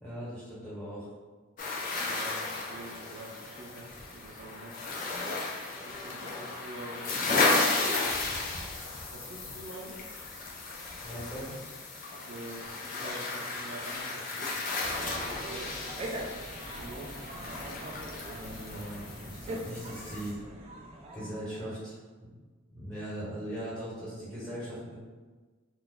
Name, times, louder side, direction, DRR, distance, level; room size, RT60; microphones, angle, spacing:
voice 1, 0.0-1.1 11.0-11.5 18.3-20.3 21.1-22.3 22.7-24.9, equal, 5° left, -10 dB, 1.2 m, -39 dB
sound 1, 1.6-20.3, left 3 dB, 40° left, 0.5 m, -34 dB
voice 2, 2.0-5.0 5.8-8.2 9.1-10.0 12.1-14.6 15.0-15.8 16.8-17.2, right 2 dB, 70° right, -4 dB, 0.6 m, -46 dB
sound 2, 14.8-21.7, right 1 dB, 30° right, 0.3 m, -42 dB
2.4 x 2.3 x 3.7 m, 1.4 s
head